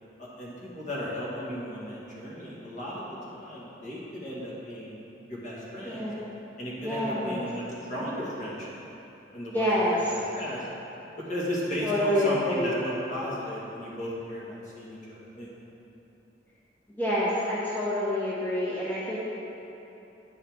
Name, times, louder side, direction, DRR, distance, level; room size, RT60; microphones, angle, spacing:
voice 1, 0.2-5.0 5.3-6.1 6.6-8.8 9.3-10.7 11.3-15.5, equal, 45° left, -7 dB, 1.6 m, -35 dB
voice 2, 5.8-6.2 6.8-7.4 9.5-10.1 11.8-12.7 16.9-19.2, left 1 dB, 10° left, -8 dB, 0.8 m, -27 dB
9.5 x 5.5 x 3.5 m, 3.0 s
head